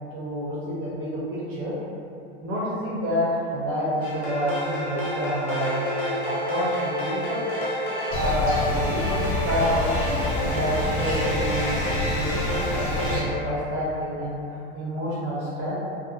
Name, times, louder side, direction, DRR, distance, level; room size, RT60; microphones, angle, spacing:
voice 1, 0.1-1.7 2.4-5.8 6.2-7.4 8.1-9.2 9.4-9.9 10.4-14.4 14.7-15.7, equal, 40° right, -8 dB, 0.7 m, -28 dB
sound 1, 4.0-13.2, left 1 dB, 40° left, 0.8 m, -29 dB
sound 2, 8.1-13.2, left 1 dB, 55° left, 1.0 m, -28 dB
2.4 x 2.3 x 2.6 m, 2.6 s
supercardioid pair, 115°, 33 cm